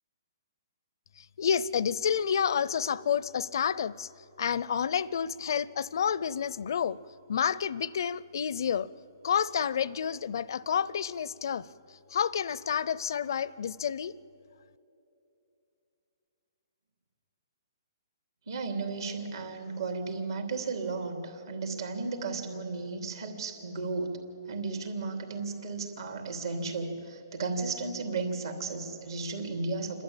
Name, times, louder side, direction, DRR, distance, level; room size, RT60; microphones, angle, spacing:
voice 1, 1.2-4.1 4.4-7.0 7.3-8.9 9.2-14.1, left 8 dB, 65° left, 21 dB, 0.5 m, -29 dB
voice 2, 18.5-24.2 24.5-30.0, right 3 dB, 75° right, 4 dB, 3.1 m, -34 dB
27.5 x 12.5 x 8.8 m, 2.8 s
hypercardioid pair, 150°, 2 cm